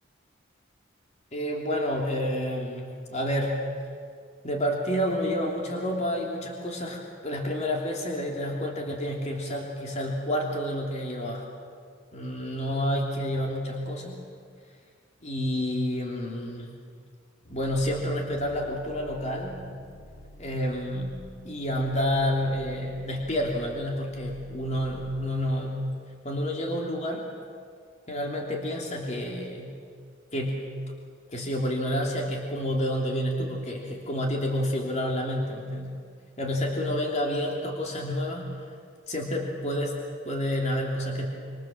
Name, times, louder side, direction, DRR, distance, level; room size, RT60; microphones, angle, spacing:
voice 1, 1.3-3.6 4.4-11.4 12.1-14.2 15.2-16.7 17.5-19.6 20.4-25.9 26.2-27.3 28.1-29.7 30.3-30.7 31.3-36.0 36.4-38.5 39.1-41.3, equal, 35° left, 0 dB, 3.1 m, -29 dB
sound 1, 17.4-25.3, equal, 65° left, 3.9 m, -48 dB
26.5 x 26.5 x 7.5 m, 2.1 s
head